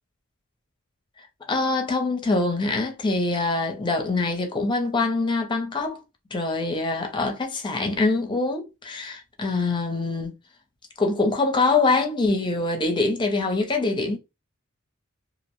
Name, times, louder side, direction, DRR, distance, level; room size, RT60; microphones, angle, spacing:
voice 1, 1.5-6.0 6.3-10.3 11.0-14.2, left 3 dB, 20° left, 0.5 m, -24 dB
2.5 x 2.0 x 2.9 m
head